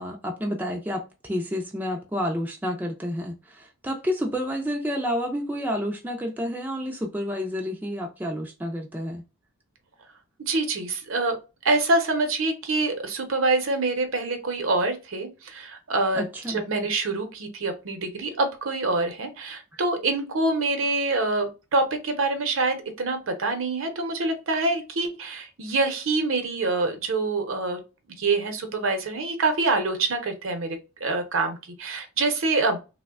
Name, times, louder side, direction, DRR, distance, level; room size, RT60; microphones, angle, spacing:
voice 1, 0.0-9.2 16.1-16.7, equal, 10° right, 0.3 m, -30 dB
voice 2, 10.4-11.4 11.6-27.8 28.2-32.8, right 3 dB, 65° right, 0.7 m, -26 dB
3.2 x 2.1 x 2.3 m
head